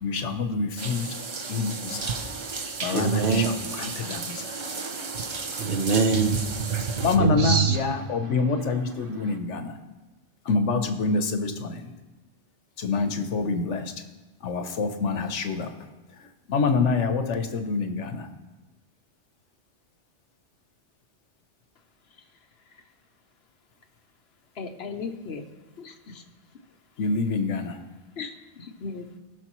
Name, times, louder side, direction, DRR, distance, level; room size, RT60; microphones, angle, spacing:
voice 1, 0.0-1.1 1.5-2.1 2.8-4.6 7.0-9.8 10.5-11.8 12.8-13.9 14.4-15.7 16.5-18.3 27.0-27.8, left 4 dB, 80° left, 7 dB, 1.2 m, -26 dB
sound 1, 0.8-7.2, right 4 dB, 35° right, 0.5 m, -34 dB
voice 2, 2.9-3.5 5.6-8.0, right 5 dB, 50° right, 6 dB, 0.9 m, -24 dB
voice 3, 24.5-25.4 25.8-26.2 28.2-29.1, left 5 dB, 65° left, 6 dB, 1.0 m, -37 dB
18.5 x 6.4 x 3.0 m, 1.1 s
omnidirectional pair, 1.2 m